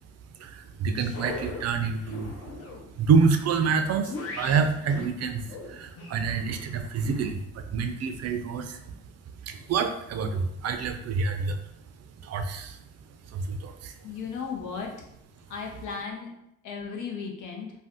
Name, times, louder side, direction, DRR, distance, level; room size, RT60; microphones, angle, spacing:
voice 1, 0.4-2.3 3.0-8.8 9.4-11.6 12.2-12.8 13.3-13.9, right 5 dB, 55° right, 7 dB, 0.5 m, -27 dB
sound 1, 1.0-7.3, left 3 dB, 50° left, 0.6 m, -41 dB
voice 2, 14.0-14.9 15.5-16.3 16.6-17.7, left 5 dB, 85° left, 0 dB, 0.7 m, -35 dB
2.6 x 2.3 x 3.5 m, 0.79 s
cardioid pair, 90°, 30 cm